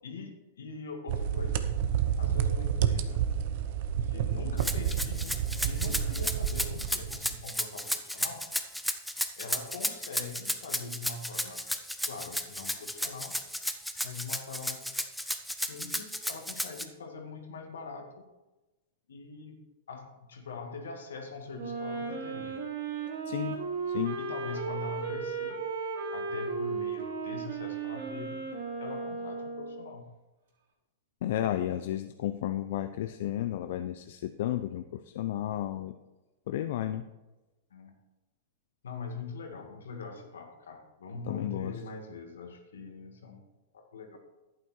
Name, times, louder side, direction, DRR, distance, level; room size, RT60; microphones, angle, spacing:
voice 1, 0.0-1.7 2.2-3.3 4.0-8.5 9.4-11.7 12.0-13.4 14.0-14.9 15.6-18.3 19.1-19.6 19.9-22.6 24.2-25.6 26.1-28.5 28.8-30.1 37.7-37.9 38.8-43.5 43.7-44.2, left 4 dB, 85° left, 4 dB, 2.0 m, -42 dB
sound 1, 1.1-7.4, right 9 dB, 60° right, 1.0 m, -30 dB
Rattle (instrument), 4.6-16.8, equal, ahead, 0.8 m, -33 dB
Wind instrument woodwind instrument, 21.5-29.9, right 5 dB, 80° right, 3.5 m, -35 dB
voice 2, 23.3-23.6 23.9-24.2 31.2-35.9 36.5-37.0 41.3-41.7, left 12 dB, 65° left, 9 dB, 0.6 m, -32 dB
11.0 x 9.1 x 4.4 m, 1.1 s
hypercardioid pair, 125°, 0 cm